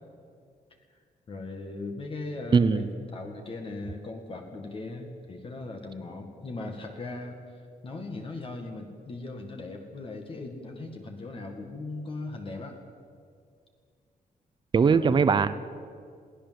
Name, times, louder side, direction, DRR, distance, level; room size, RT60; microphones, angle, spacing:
voice 1, 1.3-12.8 14.9-15.2, left 2 dB, 35° left, 3 dB, 1.9 m, -39 dB
voice 2, 2.5-2.9 14.7-15.6, right 5 dB, 30° right, 14 dB, 0.7 m, -21 dB
22.0 x 17.0 x 7.7 m, 2.2 s
wide cardioid pair, 170°, 15 cm